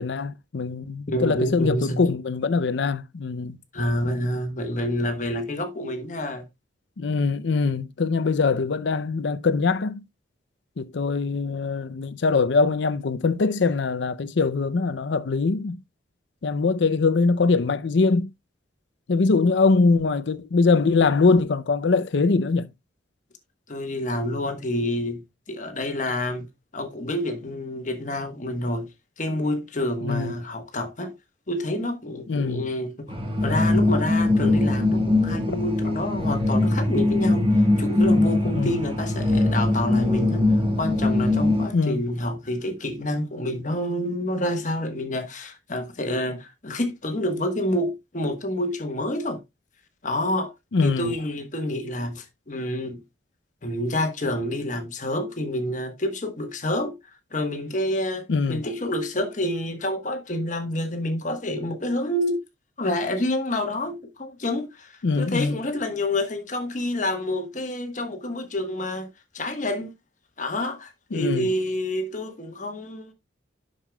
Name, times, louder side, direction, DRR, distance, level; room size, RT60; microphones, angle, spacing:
voice 1, 0.0-3.6 7.0-10.0 10.8-15.8 16.4-18.3 19.1-22.7 30.0-30.3 32.3-32.7 38.5-38.7 41.7-42.0 50.7-51.1 58.3-58.6 65.0-65.6 71.1-71.5, left 4 dB, 70° left, 0.5 m, -22 dB
voice 2, 1.1-2.0 3.7-6.4 23.7-25.2 25.5-26.5 26.7-28.9 29.2-31.1 31.5-33.1 33.4-37.5 37.8-40.5 40.8-49.4 50.0-50.5 50.8-53.0 53.6-56.9 57.3-62.4 62.8-69.1 69.3-69.9 70.4-73.1, left 1 dB, 40° left, 1.2 m, -28 dB
sound 1, 33.1-41.7, left 2 dB, 30° right, 1.3 m, -21 dB
11.0 x 6.5 x 2.3 m
head